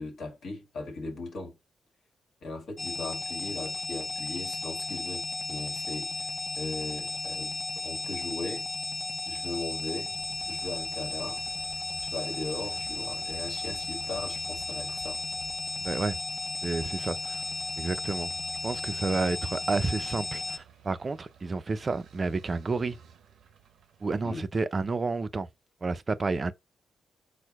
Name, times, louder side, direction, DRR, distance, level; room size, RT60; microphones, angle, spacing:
voice 1, 0.0-1.6 2.4-8.7 9.3-10.1 10.4-11.4 12.0-15.2 24.2-24.4, left 2 dB, 70° left, 1.5 m, -38 dB
sound 1, 2.8-20.6, left 3 dB, 30° left, 0.7 m, -35 dB
sound 2, 6.7-16.4, equal, 90° left, 0.8 m, -57 dB
sound 3, 9.9-24.2, right 7 dB, 75° right, 0.7 m, -53 dB
voice 2, 15.8-16.2 16.6-17.4 17.8-18.4 18.6-23.0 24.0-25.5 25.8-26.5, right 3 dB, 40° right, 0.5 m, -30 dB
4.4 x 2.2 x 4.6 m
supercardioid pair, 60°, 0 cm